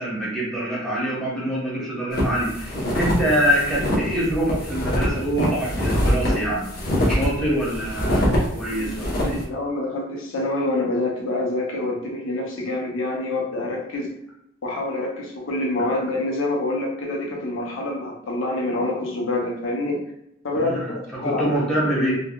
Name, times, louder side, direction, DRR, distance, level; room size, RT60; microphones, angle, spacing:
voice 1, 0.0-6.6 7.1-9.3 20.6-22.2, equal, 5° left, -7 dB, 0.9 m, -25 dB
sound 1, 2.1-9.4, equal, 50° left, 0.8 m, -24 dB
voice 2, 8.6-14.1 14.6-20.0 20.4-21.5, left 2 dB, 85° left, -1 dB, 0.6 m, -26 dB
3.3 x 2.2 x 2.2 m, 0.81 s
head